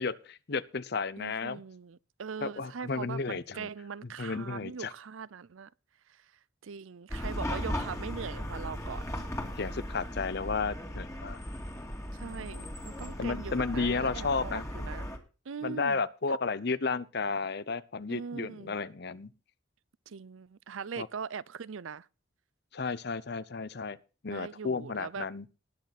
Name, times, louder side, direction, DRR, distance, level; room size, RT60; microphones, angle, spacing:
voice 1, 0.0-1.6 2.4-3.7 4.2-4.9 9.6-11.4 13.2-14.9 15.6-19.3 21.0-21.1 22.7-24.0 24.2-25.4, left 4 dB, 55° left, 0.8 m, -33 dB
voice 2, 1.2-5.7 6.6-9.0 12.1-15.1 15.5-16.0 16.3-16.4 18.1-18.8 20.1-22.1 24.3-25.3, right 6 dB, 90° right, 0.5 m, -41 dB
Chatter / Car passing by / Traffic noise roadway noise, 7.1-15.2, equal, 15° left, 2.3 m, -37 dB
19.5 x 6.6 x 4.3 m
head